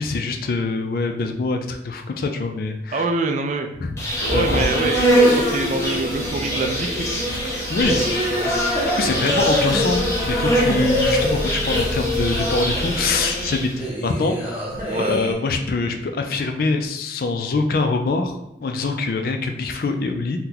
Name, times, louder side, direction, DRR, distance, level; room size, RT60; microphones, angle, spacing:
voice 1, 0.0-3.1 3.8-4.0 4.3-4.7 7.7-8.1 8.5-8.6 8.9-13.7 14.0-14.6 15.0-20.4, left 3 dB, 55° left, 5 dB, 0.3 m, -24 dB
voice 2, 2.9-3.7 4.3-7.3 8.0-8.7 14.9-15.2, right 2 dB, 40° right, 5 dB, 0.3 m, -26 dB
sound 1, 4.0-12.3, equal, 90° left, 0.8 m, -34 dB
Insect, 4.0-13.8, right 1 dB, 15° left, 0.6 m, -23 dB
sound 2, 5.1-15.3, left 1 dB, 15° right, 0.9 m, -26 dB
2.8 x 2.2 x 3.8 m, 0.85 s
head